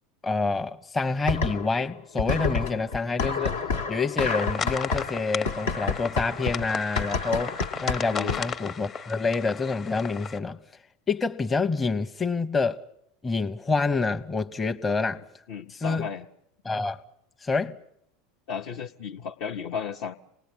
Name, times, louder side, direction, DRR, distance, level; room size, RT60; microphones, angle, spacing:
voice 1, 0.2-3.5 3.9-10.6 11.1-12.8 13.2-15.2 15.8-16.1 16.6-17.0 17.4-17.7, left 4 dB, 20° left, 0.8 m, -27 dB
sound 1, 1.3-1.9 2.2-8.6, left 4 dB, 75° left, 1.2 m, -29 dB
sound 2, 4.2-10.4, left 6 dB, 35° left, 1.0 m, -35 dB
voice 2, 8.1-8.4 15.5-16.2 18.5-20.2, left 7 dB, 60° left, 0.8 m, -34 dB
27.0 x 19.0 x 7.9 m
hypercardioid pair, 80°, 0 cm